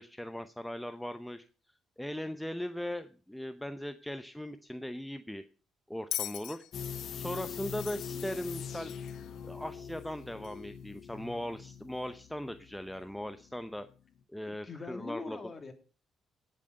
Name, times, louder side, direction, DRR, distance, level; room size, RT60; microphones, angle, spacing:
voice 1, 0.0-1.4 2.0-5.4 5.9-6.6 7.1-8.9 9.4-13.9 14.3-15.4, left 1 dB, 5° left, 9 dB, 0.7 m, -39 dB
Bell, 6.1-9.3 10.4-10.6, left 13 dB, 85° left, 0.7 m, -41 dB
sound 1, 6.7-13.5 13.8-13.9, left 7 dB, 65° left, 1.0 m, -43 dB
voice 2, 14.4-15.7, left 4 dB, 30° left, 6 dB, 2.8 m, -42 dB
17.5 x 7.5 x 5.3 m, 0.39 s
cardioid pair, 95°, 0 cm